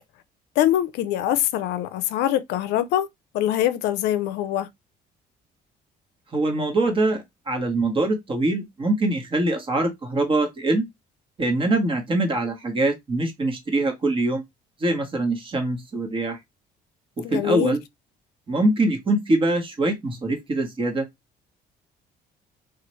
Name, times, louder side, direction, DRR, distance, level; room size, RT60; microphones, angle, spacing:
voice 1, 0.6-3.1 3.3-4.7 17.2-17.7, left 12 dB, 85° left, 0.4 m, -23 dB
voice 2, 6.3-10.8 11.4-14.4 14.8-16.4 17.2-17.8 18.5-21.1, right 2 dB, 30° right, 1.1 m, -23 dB
2.9 x 2.4 x 3.0 m
cardioid pair, 110°, 17 cm